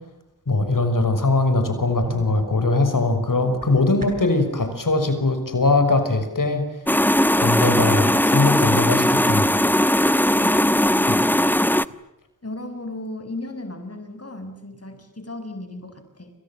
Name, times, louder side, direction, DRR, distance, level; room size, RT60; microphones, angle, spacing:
voice 1, 0.5-6.7 7.4-9.6, left 2 dB, 75° left, 8 dB, 6.2 m, -21 dB
sound 1, 1.9-4.4, right 3 dB, 85° right, 6.8 m, -40 dB
sound 2, 6.9-11.9, left 1 dB, 5° left, 1.1 m, -19 dB
voice 2, 10.3-11.4 12.4-16.3, left 2 dB, 45° left, 8 dB, 7.3 m, -36 dB
29.0 x 27.0 x 7.5 m, 0.85 s
wide cardioid pair, 55°, 33 cm